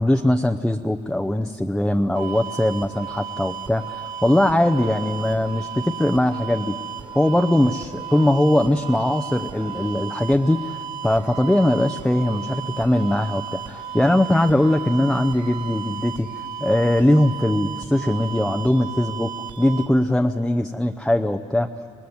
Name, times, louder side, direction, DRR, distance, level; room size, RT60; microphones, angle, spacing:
voice 1, 0.0-6.8 7.1-16.3 16.6-19.3 19.6-21.7, left 1 dB, 5° left, 6 dB, 0.7 m, -20 dB
sound 1, 2.1-19.9, right 7 dB, 50° right, 3.5 m, -34 dB
25.5 x 19.0 x 9.5 m, 2.6 s
cardioid pair, 115°, 15 cm